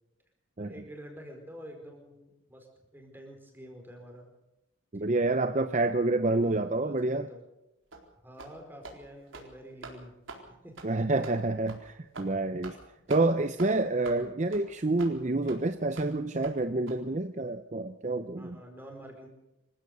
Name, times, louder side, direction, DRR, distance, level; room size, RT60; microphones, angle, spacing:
voice 1, 0.6-2.7 2.9-4.2 6.3-7.4 8.2-10.1 10.5-10.9 18.4-19.3, equal, 10° right, 2 dB, 4.8 m, -48 dB
voice 2, 4.9-7.3 10.8-12.8 13.1-18.6, right 2 dB, 35° right, 9 dB, 0.7 m, -28 dB
sound 1, 7.9-8.1 8.4-8.6 8.8-9.0 9.3-9.5 9.8-10.0 10.3-10.4 10.8-10.9 11.2-11.4 11.7-11.8 12.1-12.3 12.6-12.8 13.1-13.2 13.6-13.7 14.0-14.2 14.5-14.6 15.0-15.1 15.5-15.6 16.0-16.1 16.4-16.5 16.9-17.0, right 3 dB, 85° right, 4.1 m, -44 dB
26.5 x 15.5 x 6.8 m, 0.92 s
head